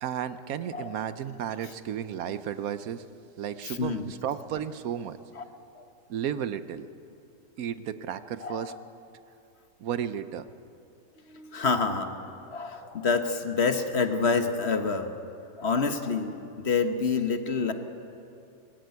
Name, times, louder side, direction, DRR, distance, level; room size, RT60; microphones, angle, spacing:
voice 1, 0.0-3.0 3.4-5.2 6.1-6.9 7.6-8.7 9.8-10.5, right 9 dB, 75° right, 13 dB, 1.2 m, -33 dB
voice 2, 3.6-4.1 5.3-5.4 5.7-5.8 8.4-8.8 11.3-12.2 12.5-15.1 15.6-17.7, left 4 dB, 50° left, 7 dB, 1.4 m, -27 dB
20.5 x 15.5 x 9.4 m, 2.6 s
omnidirectional pair, 1.5 m